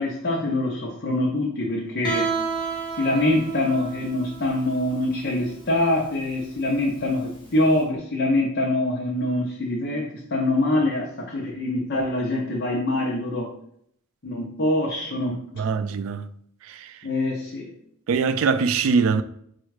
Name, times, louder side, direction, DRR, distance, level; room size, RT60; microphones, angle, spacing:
voice 1, 0.0-2.3 3.0-13.5 14.2-15.4 17.0-17.7, left 1 dB, 50° left, 0.7 m, -24 dB
Guitar, 2.0-7.7, right 5 dB, 25° left, 1.1 m, -32 dB
voice 2, 15.6-16.3 16.6-17.0 18.1-19.2, right 5 dB, 70° right, 0.3 m, -23 dB
4.3 x 2.4 x 4.7 m
head